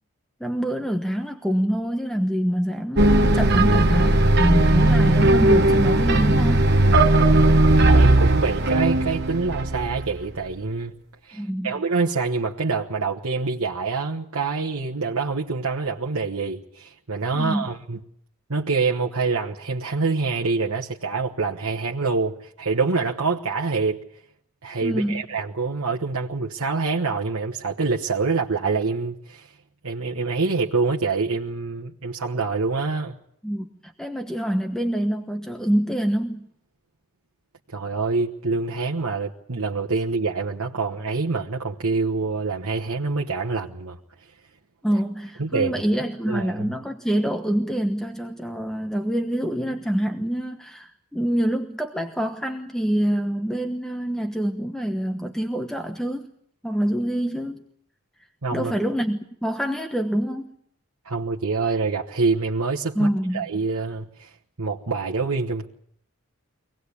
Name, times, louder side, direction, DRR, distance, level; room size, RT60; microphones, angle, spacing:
voice 1, 0.4-6.7 11.3-11.8 17.3-17.7 24.8-25.2 33.4-36.5 44.8-56.3 56.6-57.6 58.5-60.5 62.9-63.4, equal, 5° left, 1.1 m, -26 dB
sound 1, 3.0-10.2, right 2 dB, 50° right, 1.2 m, -17 dB
voice 2, 7.9-10.9 11.2-18.0 18.5-24.0 24.6-29.5 29.8-33.1 37.7-44.0 45.4-45.7 46.3-46.7 58.4-58.7 61.0-63.1 63.3-64.3 64.6-65.7, right 4 dB, 80° right, 1.3 m, -26 dB
24.0 x 18.5 x 8.5 m
head